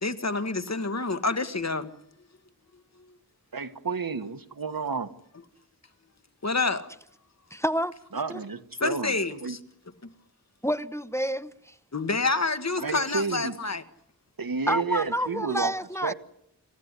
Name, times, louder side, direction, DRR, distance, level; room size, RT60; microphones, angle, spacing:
voice 1, 0.0-1.9 6.4-6.9 8.8-9.6 11.9-13.8, left 3 dB, 50° left, 1.6 m, -28 dB
voice 2, 3.5-5.1 8.1-9.6 12.8-13.6 14.4-15.7 16.0-16.1, right 4 dB, 75° right, 1.5 m, -31 dB
voice 3, 7.5-7.9 8.3-8.4 10.6-11.7 14.7-16.1, equal, 10° left, 0.9 m, -28 dB
28.0 x 15.0 x 9.8 m
wide cardioid pair, 55°, 35 cm